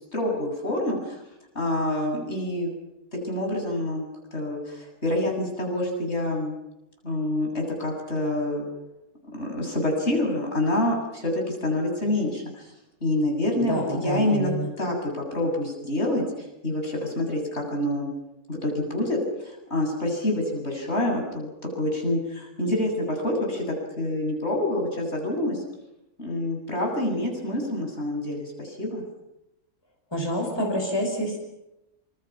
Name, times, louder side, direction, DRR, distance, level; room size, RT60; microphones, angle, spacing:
voice 1, 0.1-1.2 1.5-2.7 3.2-4.1 4.3-6.5 7.0-8.6 9.2-12.7 13.0-14.5 14.8-18.1 18.5-19.2 19.4-21.5 21.7-25.6 26.2-29.0, left 1 dB, 45° left, 0 dB, 8.0 m, -27 dB
voice 2, 13.7-14.7 30.1-31.4, equal, 15° left, 1 dB, 5.9 m, -27 dB
27.5 x 27.5 x 6.0 m, 0.91 s
omnidirectional pair, 1.5 m